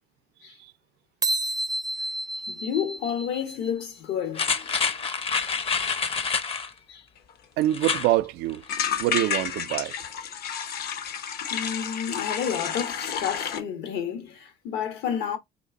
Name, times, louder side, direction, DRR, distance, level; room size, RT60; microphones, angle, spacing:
sound 1, 1.2-3.8, right 2 dB, 25° right, 0.5 m, -30 dB
voice 1, 2.5-4.8 6.5-7.0 11.5-15.4, left 8 dB, 85° left, 1.3 m, -31 dB
sound 2, 4.3-6.7 7.7-8.1 8.5-8.6, left 5 dB, 35° left, 0.6 m, -27 dB
sound 3, 7.3-7.4 7.6-7.7 8.0-8.2 8.7-13.6, left 8 dB, 70° left, 0.8 m, -31 dB
voice 2, 7.6-8.6 9.0-9.9, right 15 dB, 85° right, 0.4 m, -25 dB
4.2 x 2.5 x 3.9 m
cardioid pair, 110°, 17 cm